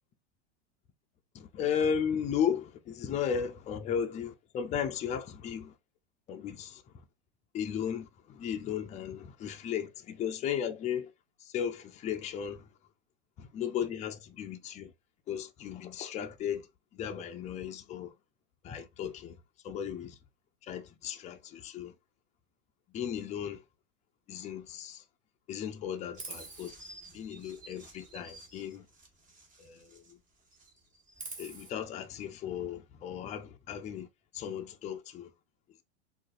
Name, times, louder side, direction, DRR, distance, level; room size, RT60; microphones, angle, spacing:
voice 1, 1.3-5.7 6.3-6.8 7.5-11.1 11.4-12.7 13.4-14.9 15.3-16.7 16.9-18.1 18.6-19.4 19.6-20.2 20.6-21.9 22.9-23.6 24.3-25.0 25.5-26.7 27.1-28.9 29.6-30.2 31.4-34.1 34.3-35.3, left 8 dB, 20° left, 0.4 m, -35 dB
Chirp tweet, 26.1-30.2 30.5-31.7, right 3 dB, 25° right, 1.1 m, -48 dB
3.8 x 2.4 x 2.4 m
hypercardioid pair, 120°, 34 cm